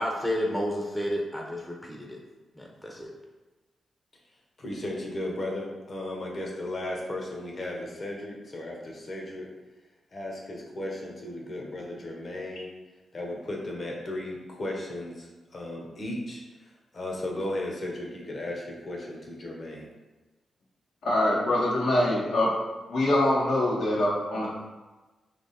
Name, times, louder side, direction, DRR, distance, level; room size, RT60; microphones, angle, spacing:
voice 1, 0.0-2.2 2.5-3.1, equal, 10° left, -1 dB, 0.7 m, -31 dB
voice 2, 4.6-9.5 10.1-12.7 13.1-19.9, left 1 dB, 50° left, -1 dB, 1.0 m, -35 dB
voice 3, 21.0-22.5 22.9-24.5, left 1 dB, 80° left, -5 dB, 1.2 m, -24 dB
3.5 x 2.9 x 4.2 m, 1.2 s
cardioid pair, 70°, 0 cm